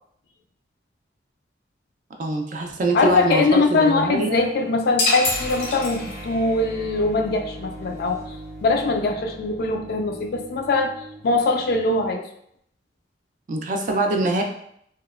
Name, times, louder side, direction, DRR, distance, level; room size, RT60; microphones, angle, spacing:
voice 1, 2.2-4.5 13.5-14.4, right 2 dB, 45° right, 2 dB, 0.4 m, -23 dB
voice 2, 2.9-8.4 8.6-10.9 11.2-12.3, left 3 dB, 60° left, 4 dB, 0.3 m, -22 dB
sound 1, 5.0-6.5, left 2 dB, 85° left, 0.8 m, -25 dB
sound 2, 5.2-11.3, right 1 dB, 15° right, 0.7 m, -39 dB
2.8 x 2.0 x 2.4 m, 0.70 s
head